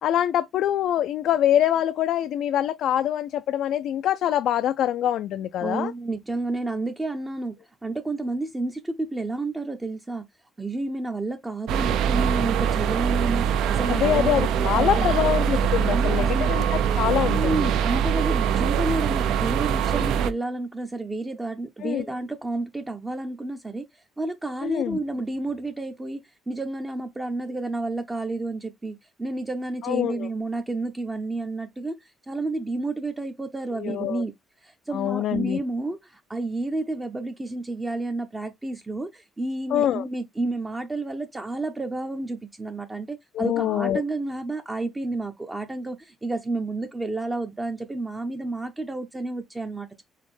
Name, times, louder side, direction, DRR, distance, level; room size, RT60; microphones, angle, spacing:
voice 1, 0.0-5.9 13.9-17.7 21.8-22.0 24.6-25.0 29.8-30.3 33.8-34.2 34.9-35.6 39.7-40.0 43.4-44.0, left 11 dB, 65° left, 0.3 m, -24 dB
voice 2, 5.6-7.6 7.8-10.3 10.6-15.1 15.9-16.5 17.3-34.3 34.6-50.0, right 2 dB, 15° right, 0.5 m, -30 dB
sound 1, 11.7-20.3, right 8 dB, 80° right, 0.5 m, -23 dB
4.1 x 4.0 x 3.1 m
cardioid pair, 145°, 0 cm